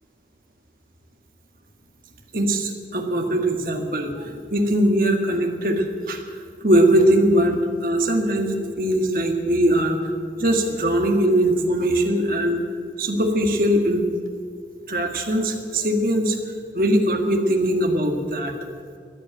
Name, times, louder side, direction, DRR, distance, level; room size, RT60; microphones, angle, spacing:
voice 1, 2.3-6.2 6.6-10.0 10.4-12.6 13.0-14.0 14.9-16.4 16.7-18.5, right 1 dB, 50° right, 4 dB, 1.7 m, -21 dB
14.5 x 10.5 x 8.9 m, 2.1 s
head